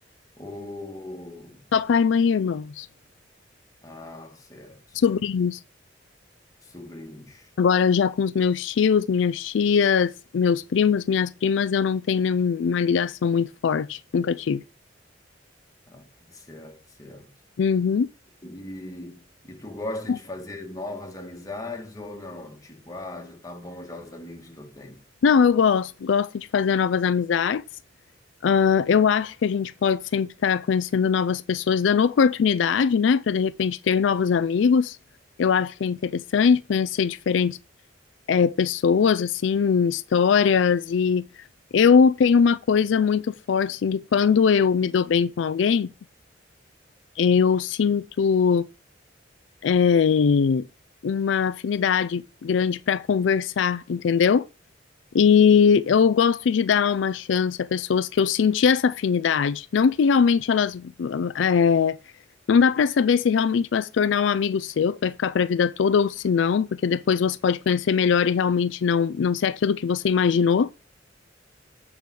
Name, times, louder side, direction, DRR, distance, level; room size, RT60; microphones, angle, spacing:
voice 1, 0.4-1.6 3.8-5.2 6.6-7.5 15.9-17.3 18.4-25.0, left 2 dB, 20° left, 1.6 m, -39 dB
voice 2, 1.7-2.9 4.9-5.6 7.6-14.6 17.6-18.1 20.1-20.2 25.2-27.6 28.4-35.0 35.4-37.6 38.3-41.2 41.7-45.9 47.2-48.7 49.6-50.6 51.0-54.5 55.1-62.0 62.5-70.7, left 6 dB, 75° left, 0.4 m, -21 dB
8.4 x 4.9 x 6.2 m
head